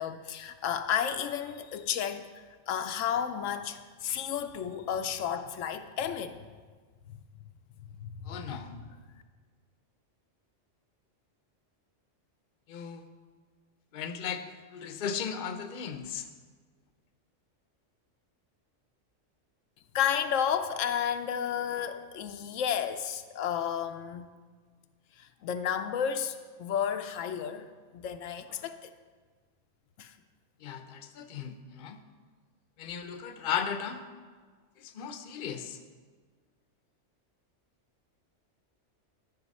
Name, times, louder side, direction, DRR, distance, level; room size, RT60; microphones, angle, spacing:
voice 1, 0.0-6.4 7.8-8.8 19.9-24.3 25.2-28.9 30.0-30.2, left 8 dB, 80° left, 0.9 m, -32 dB
voice 2, 8.3-8.7 12.7-13.0 13.9-14.4 14.7-16.3 30.6-32.0 32.8-34.0 34.8-35.8, left 7 dB, 50° left, 0.8 m, -36 dB
12.5 x 5.7 x 5.4 m
omnidirectional pair, 1.3 m